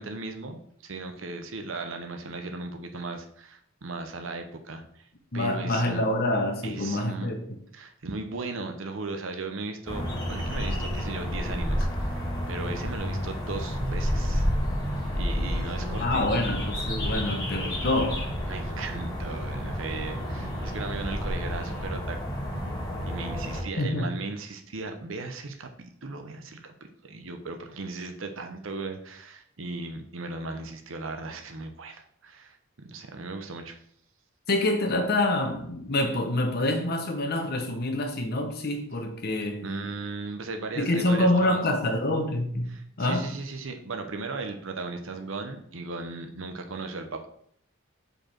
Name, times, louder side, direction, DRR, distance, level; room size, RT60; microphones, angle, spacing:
voice 1, 0.0-5.1 5.3-6.0 6.6-7.3 7.7-14.5 15.1-16.4 18.5-22.2 22.5-22.6 23.0-26.7 27.0-33.8 39.6-41.6 42.7-47.3, right 3 dB, 65° right, 0.8 m, -37 dB
voice 2, 5.3-7.5 16.0-18.3 23.8-24.1 34.5-39.6 40.8-42.7 43.0-43.3, left 1 dB, 50° left, 1.0 m, -26 dB
sound 1, 9.9-23.6, equal, 20° left, 2.1 m, -30 dB
5.1 x 4.8 x 4.4 m
head